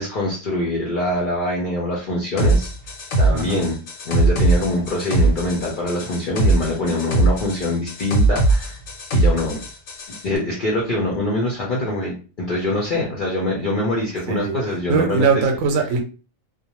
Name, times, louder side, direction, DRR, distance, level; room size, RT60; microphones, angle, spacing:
voice 1, 0.0-2.7 3.2-3.8 4.0-8.8 9.1-9.6 10.2-15.3, left 1 dB, 50° left, -3 dB, 0.7 m, -24 dB
sound 1, 2.4-10.2, right 2 dB, 80° left, 1.1 m, -20 dB
voice 2, 3.3-3.7 14.3-16.0, right 5 dB, 85° right, 3 dB, 1.0 m, -21 dB
2.5 x 2.1 x 2.9 m, 0.36 s
omnidirectional pair, 1.4 m